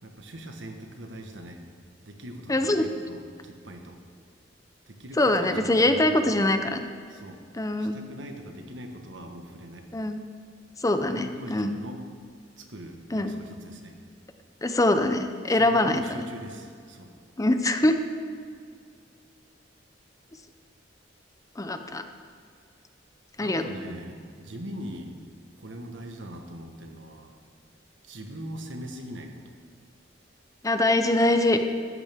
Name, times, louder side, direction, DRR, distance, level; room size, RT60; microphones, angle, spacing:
voice 1, 0.0-1.6 2.0-4.0 4.9-6.5 7.1-7.4 7.8-9.9 11.1-12.0 12.6-14.0 15.5-17.1 23.4-25.1 25.6-27.4 28.0-29.6, equal, 75° right, 4 dB, 1.4 m, -41 dB
voice 2, 2.5-2.9 5.2-6.8 7.5-8.0 9.9-10.2 10.8-11.8 13.1-13.4 14.6-16.3 17.4-18.0 21.6-22.0 23.4-23.6 30.6-31.6, left 1 dB, 20° left, 8 dB, 0.6 m, -23 dB
14.5 x 12.5 x 3.6 m, 2.2 s
head